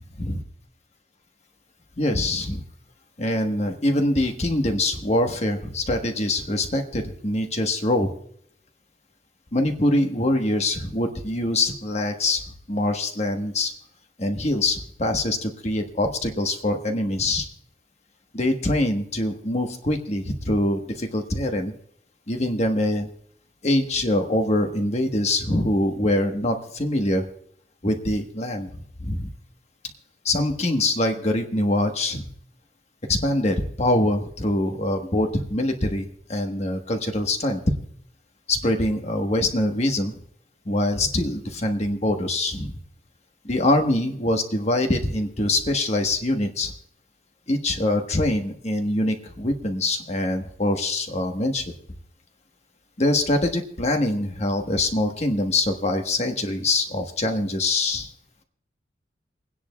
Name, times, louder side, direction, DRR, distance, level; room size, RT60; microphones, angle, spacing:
voice 1, 2.0-2.6 3.2-8.1 9.5-12.4 12.7-13.7 14.2-17.5 18.3-21.7 22.3-23.1 23.6-27.2 27.8-28.7 29.0-29.3 30.2-32.2 33.1-37.7 38.5-40.1 40.6-42.8 43.4-46.7 47.5-51.7 53.0-58.1, left 1 dB, 40° left, 5 dB, 1.2 m, -24 dB
29.0 x 9.9 x 2.3 m, 0.67 s
head